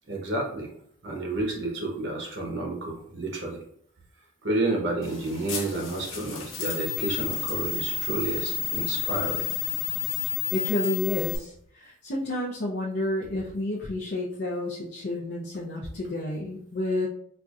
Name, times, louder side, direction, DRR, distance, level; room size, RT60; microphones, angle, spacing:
voice 1, 0.1-0.7 1.0-3.6 4.4-9.5, right 2 dB, 60° right, 0 dB, 0.8 m, -30 dB
sound 1, 5.0-11.4, left 8 dB, 80° left, 0.8 m, -31 dB
voice 2, 10.5-17.1, left 1 dB, 55° left, -4 dB, 0.5 m, -30 dB
4.3 x 2.6 x 2.3 m, 0.67 s
head